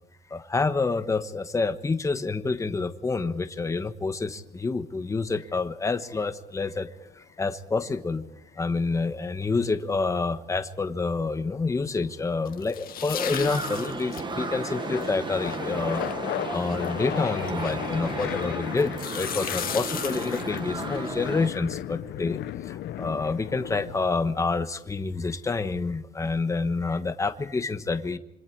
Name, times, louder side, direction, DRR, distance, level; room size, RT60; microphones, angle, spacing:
voice 1, 0.3-6.9 7.1-8.3 8.6-16.0 16.5-22.4 22.6-28.2, left 4 dB, 20° left, 10 dB, 1.2 m, -28 dB
sound 1, 6.0-7.2 9.0-10.3 11.2-11.7 12.0-23.9, left 13 dB, 85° left, 0.8 m, -36 dB
sound 2, 12.5-18.4 18.8-21.1, left 10 dB, 60° left, 1.9 m, -37 dB
sound 3, 13.2-21.5, right 4 dB, 25° right, 1.3 m, -35 dB
26.5 x 26.0 x 4.7 m, 0.82 s
cardioid pair, 165°, 17 cm